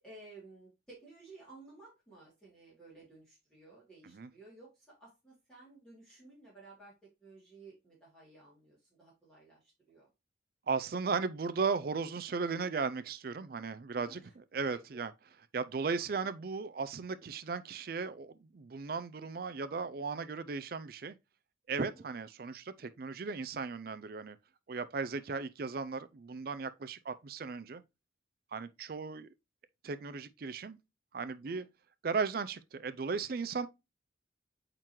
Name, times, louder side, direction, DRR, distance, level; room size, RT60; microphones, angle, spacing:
voice 1, 0.0-6.9 7.2-10.1 13.9-14.3 14.7-15.0 21.8-22.1 31.4-31.7, right 3 dB, 5° left, 2.8 m, -55 dB
voice 2, 10.7-14.2 14.5-15.1 15.5-21.1 21.7-24.4 24.7-27.8 28.5-29.3 29.8-30.8 31.1-31.7 32.0-33.7, right 4 dB, 55° right, 0.4 m, -36 dB
8.7 x 3.8 x 3.0 m
head